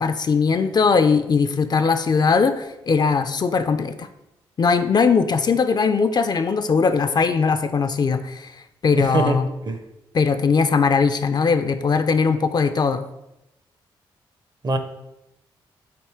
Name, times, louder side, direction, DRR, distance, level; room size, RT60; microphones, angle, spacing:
voice 1, 0.0-4.1 4.6-8.5 8.8-9.5 10.1-13.0, left 5 dB, 40° left, 10 dB, 0.3 m, -20 dB
voice 2, 9.0-9.8 14.6-14.8, right 2 dB, 45° right, 7 dB, 0.6 m, -23 dB
3.5 x 2.7 x 4.3 m, 0.91 s
supercardioid pair, 45°, 10 cm